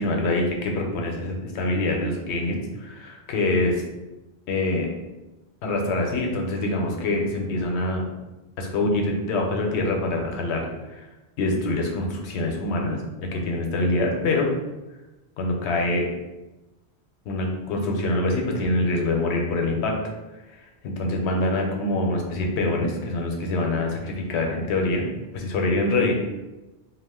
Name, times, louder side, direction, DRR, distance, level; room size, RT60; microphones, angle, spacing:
voice 1, 0.0-3.7 4.5-4.9 5.6-8.1 8.6-11.1 11.4-14.5 15.4-16.0 17.3-20.0 20.5-25.1 25.3-26.3, left 2 dB, 85° left, 1 dB, 0.9 m, -25 dB
2.3 x 2.1 x 3.4 m, 1.1 s
omnidirectional pair, 1.1 m